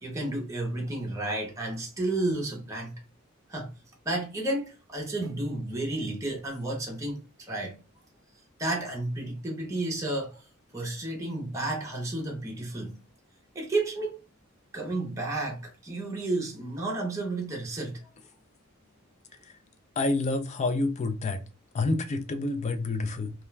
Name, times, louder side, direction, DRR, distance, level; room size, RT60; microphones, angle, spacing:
voice 1, 0.0-3.0 3.5-3.7 4.1-7.8 8.6-10.4 10.7-13.0 13.5-14.1 14.7-18.1, right 2 dB, 15° right, 0.6 m, -32 dB
voice 2, 20.0-21.4 21.7-23.3, left 2 dB, 30° left, 0.3 m, -28 dB
2.3 x 2.2 x 3.1 m
head